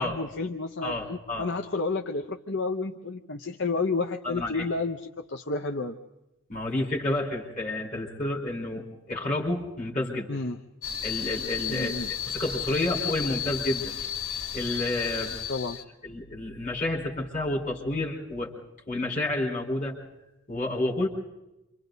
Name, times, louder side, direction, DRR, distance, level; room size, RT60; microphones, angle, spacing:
voice 1, 0.0-6.0 10.3-10.6 11.7-12.1 15.5-15.8, left 3 dB, 55° left, 4 dB, 0.9 m, -31 dB
voice 2, 0.8-1.4 4.2-4.7 6.5-10.3 11.0-11.9 12.3-13.9 14.5-15.4 16.0-18.5 18.9-20.0 20.5-21.1, left 2 dB, 35° left, -2 dB, 4.8 m, -30 dB
sound 1, 10.8-15.8, left 9 dB, 85° left, 2.2 m, -33 dB
29.0 x 26.0 x 4.1 m, 0.93 s
head